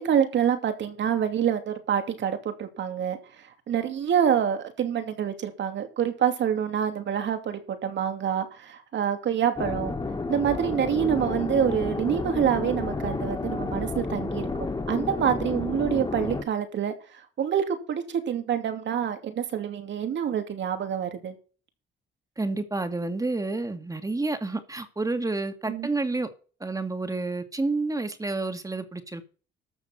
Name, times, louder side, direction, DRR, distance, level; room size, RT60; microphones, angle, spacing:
voice 1, 0.0-3.2 3.7-9.9 10.3-16.9 17.4-21.3 25.7-25.9, right 8 dB, 65° right, 2.7 m, -26 dB
sound 1, 9.6-16.4, left 3 dB, 20° left, 2.3 m, -31 dB
voice 2, 22.4-26.3 26.6-29.3, right 3 dB, 15° right, 2.2 m, -29 dB
13.5 x 6.9 x 5.7 m
cardioid pair, 90°, 20 cm